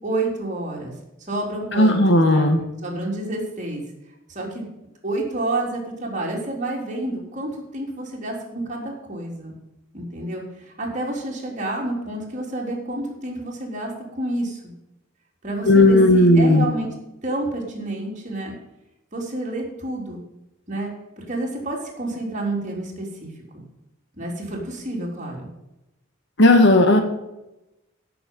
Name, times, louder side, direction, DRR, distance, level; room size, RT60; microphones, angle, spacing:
voice 1, 0.0-0.9 1.3-2.5 2.8-3.8 4.3-4.7 5.0-9.6 9.9-14.7 15.4-16.9 17.2-18.5 19.1-20.2 20.7-23.6 24.2-25.5, right 2 dB, 35° right, -1 dB, 3.6 m, -29 dB
voice 2, 1.7-2.6 15.6-16.7 26.4-27.0, left 1 dB, 60° left, 5 dB, 1.9 m, -14 dB
16.5 x 7.0 x 5.6 m, 0.94 s
head